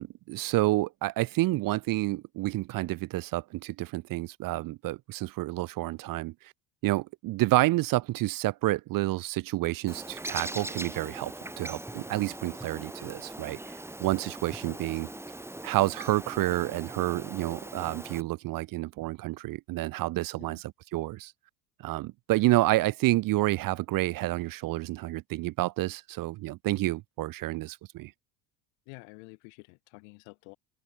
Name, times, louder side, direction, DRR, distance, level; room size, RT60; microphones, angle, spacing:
voice 1, 0.0-6.3 6.8-15.1 15.6-21.3 21.8-28.1, right 18 dB, 45° right, 0.5 m, -29 dB
Bird, 9.9-18.2, right 1 dB, 5° right, 1.5 m, -41 dB
voice 2, 14.7-15.2 20.4-20.6 22.5-22.6 28.9-30.6, left 40 dB or more, 80° left, 5.5 m, -50 dB
supercardioid pair, 95°, 49 cm